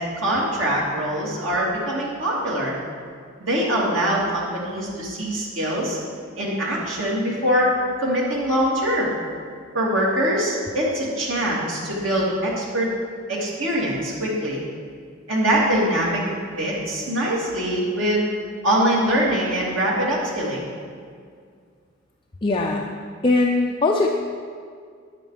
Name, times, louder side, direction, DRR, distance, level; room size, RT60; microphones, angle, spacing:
voice 1, 0.0-2.7 3.4-6.0 6.4-7.7 8.0-9.1 9.7-12.9 13.3-14.6 15.3-16.2 16.6-18.3 18.6-20.6, right 1 dB, 80° right, -5 dB, 2.8 m, -23 dB
voice 2, 22.4-22.9 23.2-24.1, left 3 dB, 25° left, 0 dB, 0.6 m, -20 dB
9.9 x 9.3 x 5.0 m, 2.1 s
head